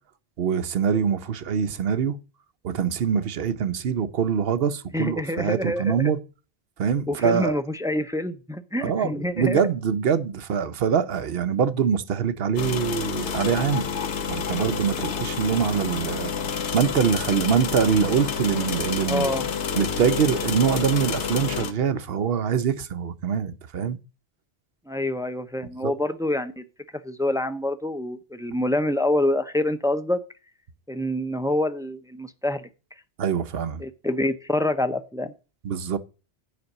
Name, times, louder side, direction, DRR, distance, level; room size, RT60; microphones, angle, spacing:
voice 1, 0.4-2.2 2.6-6.2 6.8-7.5 8.8-13.9 14.3-19.3 19.8-24.0 25.8-25.9 33.2-33.8 35.6-36.0, right 7 dB, 60° right, 0.9 m, -24 dB
voice 2, 4.9-6.0 7.1-9.7 19.1-19.5 24.9-26.6 27.0-30.2 30.9-32.7 33.8-35.3, left 1 dB, 5° right, 0.4 m, -26 dB
sound 1, 12.6-21.7, left 6 dB, 90° left, 1.2 m, -29 dB
8.2 x 5.2 x 7.2 m
omnidirectional pair, 1.1 m